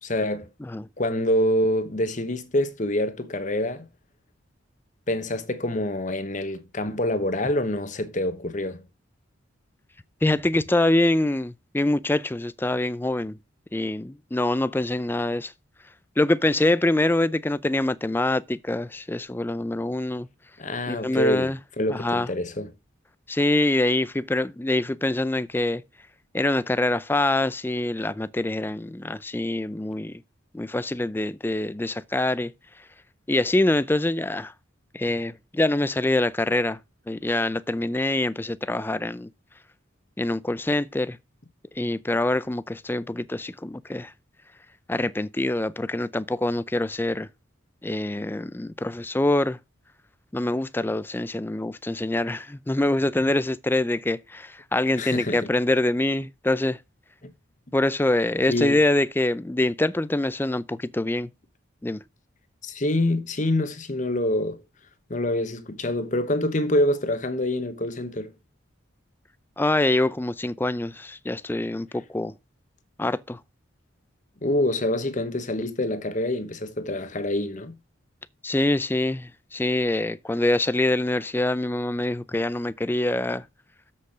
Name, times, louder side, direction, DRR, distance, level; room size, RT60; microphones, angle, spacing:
voice 1, 0.0-0.5 1.0-3.9 5.1-8.8 20.6-21.5 21.8-22.7 54.9-55.5 57.2-57.3 58.5-58.8 62.6-64.6 65.1-68.3 74.4-77.8, left 1 dB, 40° left, 1.1 m, -26 dB
voice 2, 10.2-13.4 13.7-15.5 16.2-20.3 20.9-21.6 21.9-22.3 23.3-25.8 26.3-30.2 30.5-32.5 33.3-34.5 34.9-36.8 37.1-39.3 40.2-41.2 41.8-44.1 44.9-47.3 47.8-49.6 50.3-56.8 57.7-61.3 61.8-62.0 69.6-72.3 73.0-73.4 78.4-83.4, left 1 dB, 10° left, 0.4 m, -25 dB
7.5 x 6.6 x 4.9 m
head